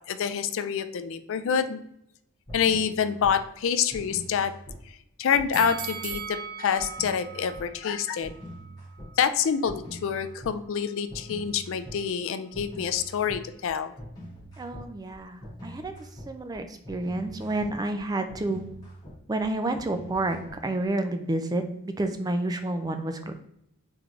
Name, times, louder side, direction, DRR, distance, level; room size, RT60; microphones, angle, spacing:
voice 1, 0.1-1.8 2.5-4.5 5.2-8.3 9.2-13.9, left 7 dB, 60° left, 10 dB, 0.4 m, -27 dB
sound 1, 2.5-3.3 3.9-4.8 5.3-6.2 6.8-7.6 8.2-9.1 9.6-10.5 11.1-12.0 12.5-20.9, equal, 20° left, 1.5 m, -43 dB
sound 2, 5.5-8.6 9.0-9.1, right 7 dB, 85° right, 0.7 m, -39 dB
voice 2, 14.6-15.9 16.3-18.6 19.3-20.4 20.6-23.3, right 2 dB, 15° right, 7 dB, 0.3 m, -29 dB
3.7 x 3.5 x 3.1 m, 0.78 s
head